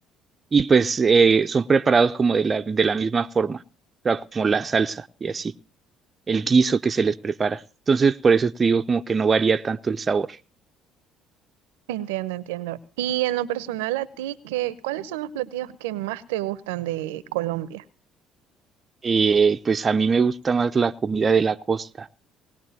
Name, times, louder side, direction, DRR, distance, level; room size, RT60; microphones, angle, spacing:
voice 1, 0.5-3.6 4.0-5.5 6.3-7.6 7.9-10.3 19.0-22.1, right 5 dB, 35° right, 0.7 m, -21 dB
voice 2, 11.9-17.8, right 14 dB, 85° right, 0.8 m, -29 dB
20.0 x 18.5 x 2.9 m
hypercardioid pair, 60°, 0 cm